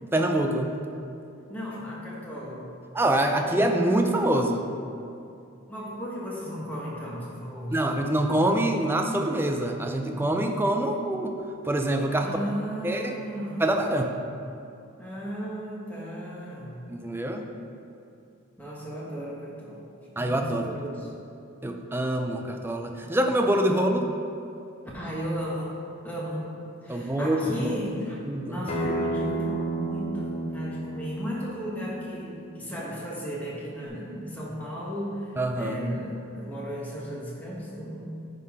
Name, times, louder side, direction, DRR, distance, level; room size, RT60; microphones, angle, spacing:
voice 1, 0.0-0.8 2.9-4.6 7.7-11.3 11.6-12.4 12.8-13.1 13.6-14.1 16.9-17.4 20.2-20.7 21.6-24.1 26.9-27.7 28.3-28.6 35.4-35.8, right 1 dB, 10° right, 4 dB, 0.4 m, -25 dB
voice 2, 1.5-2.7 5.7-7.8 12.1-13.6 15.0-16.9 18.6-19.9 20.1-21.1 24.9-26.4 26.8-38.0, equal, 10° left, -5 dB, 1.3 m, -35 dB
Acoustic guitar, 28.7-33.9, right 2 dB, 30° left, 0.8 m, -33 dB
9.7 x 3.8 x 4.9 m, 2.7 s
head